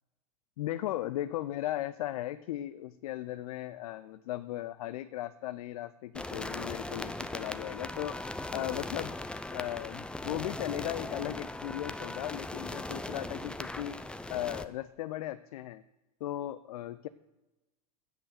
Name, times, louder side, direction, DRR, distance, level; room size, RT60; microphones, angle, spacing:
voice 1, 0.6-9.1 9.5-14.0 14.3-15.8 16.2-17.1, left 14 dB, 70° left, 13 dB, 0.4 m, -37 dB
sound 1, 6.1-14.6, left 2 dB, 5° left, 0.5 m, -39 dB
8.9 x 7.7 x 6.6 m, 1.0 s
hypercardioid pair, 95°, 19 cm